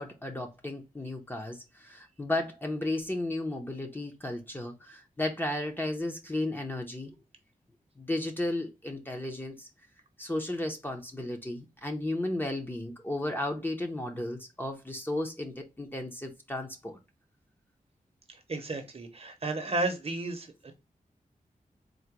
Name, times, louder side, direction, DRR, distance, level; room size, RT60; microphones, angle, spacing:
voice 1, 0.0-7.2 8.0-9.7 10.2-17.0, left 1 dB, 15° left, 0.7 m, -34 dB
voice 2, 18.3-20.5, right 2 dB, 45° right, 0.8 m, -33 dB
3.8 x 2.1 x 4.5 m
wide cardioid pair, 115°, 15 cm